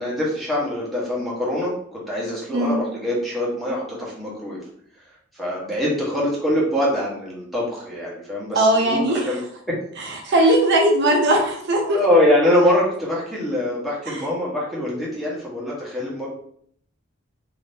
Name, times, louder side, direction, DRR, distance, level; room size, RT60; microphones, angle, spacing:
voice 1, 0.0-4.6 5.3-9.8 10.3-10.5 11.9-16.3, left 1 dB, ahead, -6 dB, 1.1 m, -23 dB
voice 2, 8.6-9.3 10.2-12.0 14.1-14.2, right 1 dB, 60° right, 1 dB, 0.6 m, -18 dB
2.8 x 2.7 x 3.4 m, 0.65 s
head